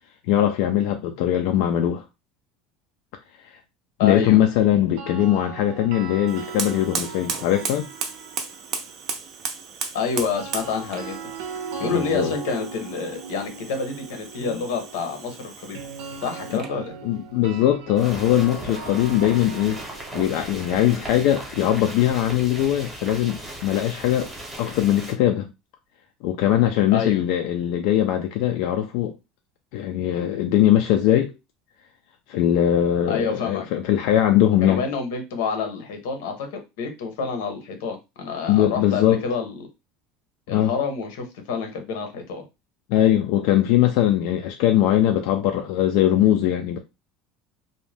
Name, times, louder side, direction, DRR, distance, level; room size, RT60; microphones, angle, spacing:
voice 1, 0.3-2.0 4.0-7.9 11.8-12.3 14.4-14.6 16.5-16.6 17.0-19.8 20.1-24.3 24.6-25.5 26.2-29.1 29.7-31.3 32.3-34.9 38.5-39.2 40.5-40.7 42.9-46.8, left 12 dB, 60° left, 0.3 m, -21 dB
voice 2, 4.0-4.4 9.9-11.2 11.8-15.8 16.2-16.9 26.9-27.2 33.1-33.7 34.6-39.6 40.5-42.4, left 5 dB, 90° left, 0.9 m, -28 dB
sound 1, 4.8-8.9 10.2-22.0, right 5 dB, 90° right, 0.7 m, -39 dB
Fire, 6.2-16.8, right 6 dB, 35° right, 0.5 m, -35 dB
sound 2, 18.0-25.1, right 1 dB, 5° right, 0.8 m, -37 dB
2.6 x 2.2 x 3.3 m
cardioid pair, 175°, 0 cm